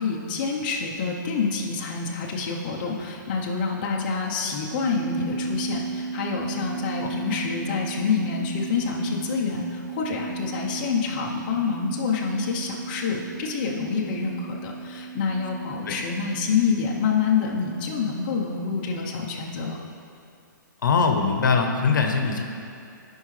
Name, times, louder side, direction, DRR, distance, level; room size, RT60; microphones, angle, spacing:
voice 1, 0.0-19.8, left 5 dB, 30° left, -2 dB, 0.8 m, -27 dB
sound 1, 4.7-18.9, right 4 dB, 10° right, 0.5 m, -35 dB
voice 2, 20.8-22.4, left 5 dB, 70° left, 4 dB, 0.9 m, -22 dB
13.0 x 5.4 x 3.2 m, 2.5 s
hypercardioid pair, 160°, 11 cm